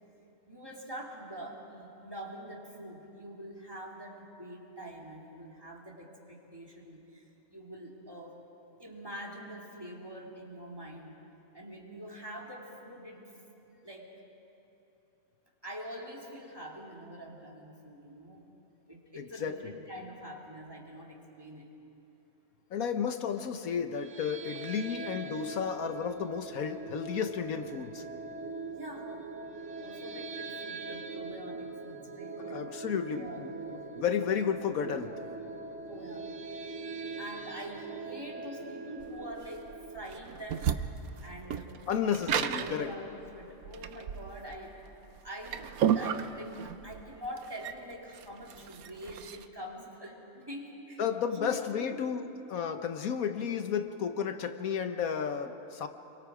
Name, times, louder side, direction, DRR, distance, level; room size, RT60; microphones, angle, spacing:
voice 1, 0.5-8.4 8.8-11.2 11.5-13.3 13.8-14.1 15.6-18.5 18.9-21.7 28.8-29.1 29.8-32.7 33.1-33.8 35.9-36.3 37.2-40.8 41.2-44.8 45.2-51.0 51.3-52.1, equal, 15° right, -2 dB, 3.0 m, -45 dB
voice 2, 19.2-19.7 22.7-28.0 32.4-33.5 34.0-35.1 41.9-42.9 51.0-55.9, left 7 dB, 80° left, 7 dB, 1.4 m, -32 dB
sound 1, 23.9-40.1, right 4 dB, 55° right, 1.4 m, -42 dB
sound 2, 39.0-49.5, right 9 dB, 85° right, 1.3 m, -34 dB
30.0 x 23.5 x 5.0 m, 3.0 s
omnidirectional pair, 1.5 m